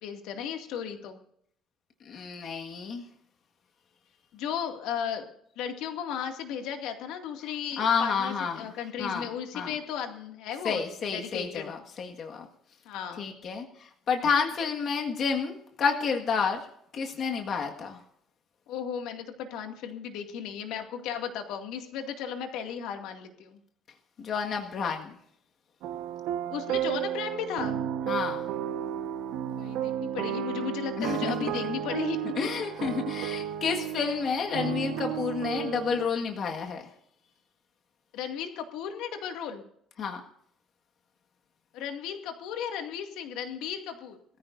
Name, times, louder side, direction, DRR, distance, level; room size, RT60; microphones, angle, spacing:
voice 1, 0.0-1.2 4.3-5.3 5.6-10.8 11.1-11.7 12.9-13.3 18.7-23.6 26.5-27.8 29.4-32.2 38.1-39.6 41.7-44.2, left 8 dB, 85° left, 4 dB, 2.2 m, -35 dB
voice 2, 2.1-3.1 7.8-8.7 9.0-9.3 9.5-9.7 10.6-12.5 13.2-16.6 16.9-18.0 24.2-25.2 28.1-28.5 31.0-31.8 32.3-36.8 40.0-40.2, left 5 dB, 40° left, 2 dB, 1.7 m, -30 dB
sound 1, 25.8-36.1, right 11 dB, 85° right, 1.1 m, -33 dB
21.5 x 14.5 x 2.6 m, 0.70 s
cardioid pair, 165°, 0 cm